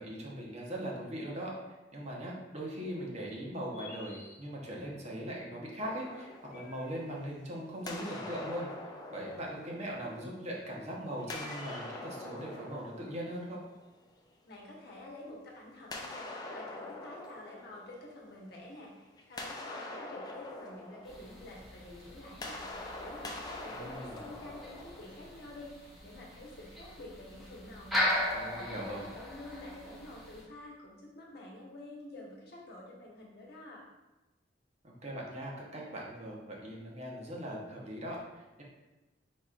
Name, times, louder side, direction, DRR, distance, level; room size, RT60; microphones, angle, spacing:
voice 1, 0.0-1.5 1.9-8.7 9.1-13.6 23.7-24.2 28.3-29.0 34.8-38.6, right 1 dB, 40° right, -2 dB, 0.9 m, -40 dB
sound 1, 3.5-4.9 6.2-7.5 8.7-9.4 10.4-12.4, left 2 dB, 40° left, 0.8 m, -52 dB
sound 2, 5.8-7.4 7.9-10.6 11.2-14.1 15.9-18.7 19.0-25.7, left 2 dB, 20° left, 0.4 m, -45 dB
voice 2, 14.4-22.6 23.0-33.8, left 1 dB, 60° left, -3 dB, 1.1 m, -49 dB
sound 3, 21.0-30.4, left 1 dB, ahead, 1.0 m, -38 dB
4.7 x 4.2 x 2.4 m, 1.1 s
head